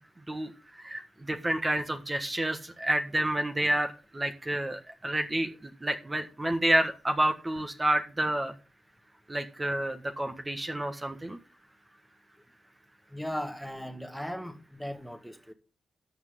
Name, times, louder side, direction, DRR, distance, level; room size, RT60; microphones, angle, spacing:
voice 1, 0.8-3.9 4.1-8.5 9.3-11.4, right 1 dB, 25° right, 1.5 m, -29 dB
voice 2, 13.1-15.5, equal, ahead, 1.7 m, -37 dB
13.0 x 8.0 x 3.7 m
supercardioid pair, 50°, 0 cm